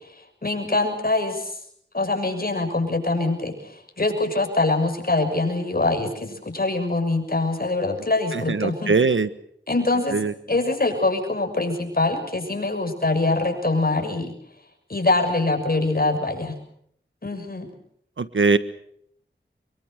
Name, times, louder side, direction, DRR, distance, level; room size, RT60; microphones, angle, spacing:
voice 1, 0.4-1.5 1.9-3.7 4.0-8.9 9.7-10.2 10.5-14.3 14.9-16.5 17.2-17.7, left 2 dB, 50° left, 5 dB, 6.7 m, -23 dB
voice 2, 8.3-9.3 10.1-10.3 18.2-18.6, right 4 dB, 75° right, 13 dB, 1.4 m, -21 dB
25.0 x 23.0 x 6.6 m, 0.68 s
cardioid pair, 40°, 20 cm